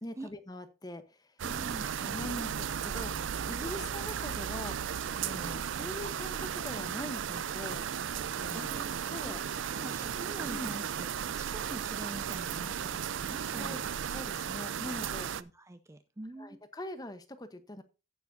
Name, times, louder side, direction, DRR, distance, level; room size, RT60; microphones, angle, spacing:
voice 1, 0.0-1.3 2.0-7.8 8.4-8.8 9.1-9.4 10.5-10.7 13.6-13.8 14.1-15.3 16.4-17.8, left 1 dB, 20° left, 10 dB, 0.9 m, -42 dB
voice 2, 1.4-1.9 8.5-13.8 15.0-16.6, right 1 dB, 15° right, 8 dB, 0.5 m, -46 dB
sound 1, 1.4-15.4, right 8 dB, 70° right, 0.4 m, -35 dB
16.0 x 7.0 x 2.7 m, 0.31 s
head